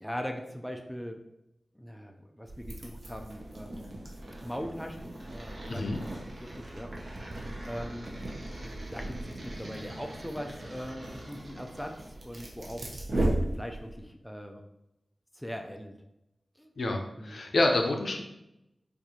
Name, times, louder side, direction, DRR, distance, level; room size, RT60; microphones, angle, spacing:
voice 1, 0.0-1.2 1.8-4.0 4.4-5.8 6.4-6.9 7.6-8.1 8.9-12.0 12.2-12.9 13.4-14.6 15.3-16.0 16.6-16.7 17.2-17.4, equal, 5° left, 4 dB, 0.3 m, -40 dB
sound 1, 2.4-14.0, right 1 dB, 55° right, 0.7 m, -37 dB
voice 2, 5.7-6.0 16.8-18.2, left 2 dB, 70° left, 3 dB, 0.5 m, -28 dB
4.4 x 2.4 x 2.7 m, 0.87 s
wide cardioid pair, 100°, 0 cm